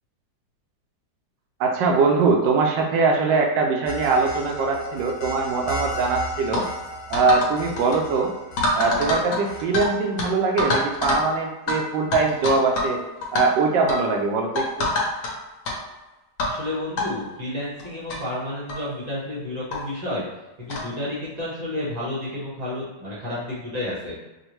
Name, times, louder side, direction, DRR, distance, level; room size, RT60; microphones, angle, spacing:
voice 1, 1.6-6.6 7.1-8.3 8.8-13.0 13.3-14.9, right 4 dB, 75° right, 2 dB, 1.1 m, -22 dB
sound 1, 3.9-9.6, right 1 dB, 85° left, 1.5 m, -35 dB
sound 2, 6.5-6.7 7.1-7.5 7.8-8.0 8.6-9.9 10.2-10.3 10.6-11.3 11.7-11.8 12.1-12.9 13.2-13.4 13.9-14.1 14.6-15.3 15.6-15.8 16.4-16.6 17.0-17.1 17.8-17.9 18.1-18.2 18.7-18.8 19.7-19.8 20.7-20.9, left 2 dB, 65° left, 1.4 m, -25 dB
voice 2, 16.4-20.2 20.6-24.1, left 1 dB, 40° right, -8 dB, 0.5 m, -31 dB
5.3 x 2.1 x 3.0 m, 1.1 s
omnidirectional pair, 2.3 m